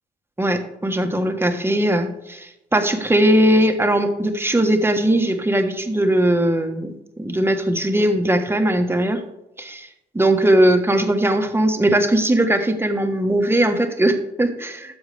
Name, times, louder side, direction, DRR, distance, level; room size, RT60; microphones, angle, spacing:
voice 1, 0.4-9.2 9.6-9.9 10.1-15.0, right 1 dB, 10° right, 6 dB, 1.3 m, -19 dB
12.5 x 7.2 x 3.4 m, 0.90 s
cardioid pair, 90°, 20 cm